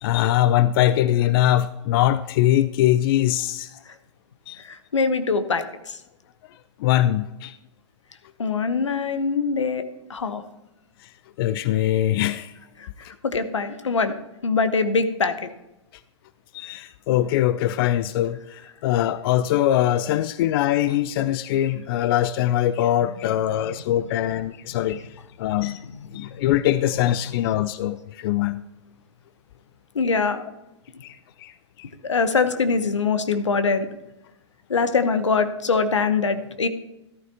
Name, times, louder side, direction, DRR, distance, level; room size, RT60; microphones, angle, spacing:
voice 1, 0.0-3.8 4.5-4.6 6.8-7.6 11.0-11.1 11.4-12.5 16.5-28.6 31.0-31.5 31.8-31.9, left 12 dB, 55° left, 15 dB, 0.4 m, -22 dB
voice 2, 4.6-6.0 8.4-9.8 10.1-10.4 12.8-14.1 14.4-15.5 18.6-18.7 23.5-23.7 24.1-24.2 24.8-25.0 25.6-26.6 26.9-27.4 29.9-30.4 32.0-33.9 34.7-36.7, left 4 dB, 90° left, 11 dB, 0.9 m, -24 dB
14.0 x 9.3 x 2.9 m, 0.94 s
hypercardioid pair, 115°, 15 cm